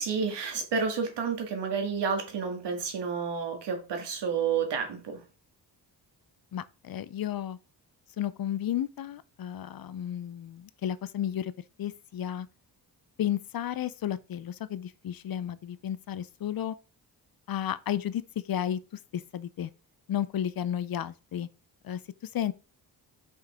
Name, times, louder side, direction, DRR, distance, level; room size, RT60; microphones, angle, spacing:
voice 1, 0.0-5.2, right 6 dB, 80° right, 2.1 m, -30 dB
voice 2, 6.5-7.6 8.2-11.5 11.8-12.5 13.2-16.8 17.5-18.2 18.5-18.8 19.1-19.7 20.1-21.5 21.8-22.0 22.3-22.5, left 10 dB, 60° left, 0.6 m, -32 dB
5.5 x 5.4 x 3.6 m
cardioid pair, 75°, 41 cm